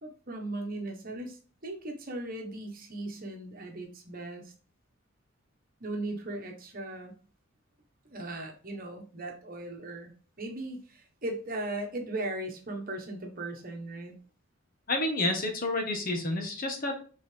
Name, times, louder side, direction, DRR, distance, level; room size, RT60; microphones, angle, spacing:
voice 1, 0.0-4.5 5.8-7.2 8.1-10.1 10.4-14.1, right 2 dB, 40° right, 2 dB, 1.3 m, -38 dB
voice 2, 14.9-17.0, left 2 dB, 40° left, 3 dB, 1.3 m, -29 dB
8.1 x 3.9 x 3.4 m, 0.38 s
head